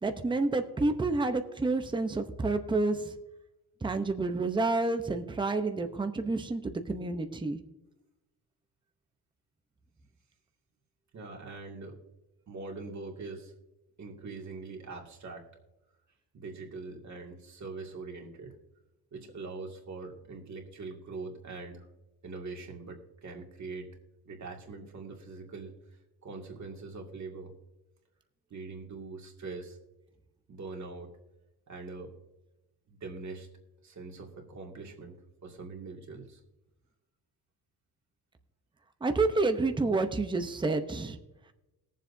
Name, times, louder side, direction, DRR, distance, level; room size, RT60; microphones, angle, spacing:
voice 1, 0.0-3.1 3.8-7.6 39.0-41.2, right 3 dB, 15° right, 7 dB, 0.8 m, -29 dB
voice 2, 11.1-12.0 12.5-13.5 14.0-15.5 16.3-18.5 19.1-21.9 22.2-23.9 24.2-25.7 26.2-27.5 28.5-29.8 30.5-31.1 31.7-32.1 32.9-33.5 33.8-35.2 35.4-36.4, right 3 dB, 45° right, 1 dB, 2.3 m, -42 dB
20.5 x 7.5 x 2.7 m, 0.98 s
cardioid pair, 125°, 37 cm